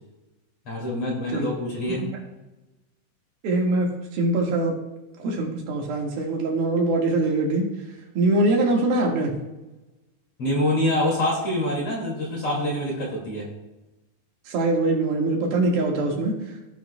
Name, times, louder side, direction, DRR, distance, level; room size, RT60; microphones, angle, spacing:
voice 1, 0.7-2.0 10.4-13.5, left 1 dB, 40° left, -3 dB, 2.7 m, -25 dB
voice 2, 3.4-4.8 5.2-7.7 8.2-9.3 14.5-16.4, right 2 dB, 70° right, -1 dB, 3.4 m, -23 dB
16.5 x 8.8 x 2.2 m, 1.1 s
omnidirectional pair, 4.7 m